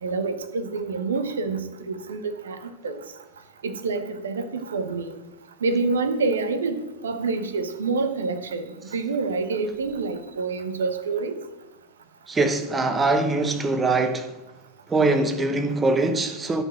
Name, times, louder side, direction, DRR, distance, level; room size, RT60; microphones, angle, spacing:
voice 1, 0.0-3.0 3.6-5.1 5.6-11.4, right 4 dB, 65° right, 1.1 m, -27 dB
voice 2, 12.3-14.3 14.9-16.6, right 3 dB, 15° right, 0.9 m, -22 dB
12.5 x 5.3 x 6.5 m
figure-of-eight pair, 90°, 0 cm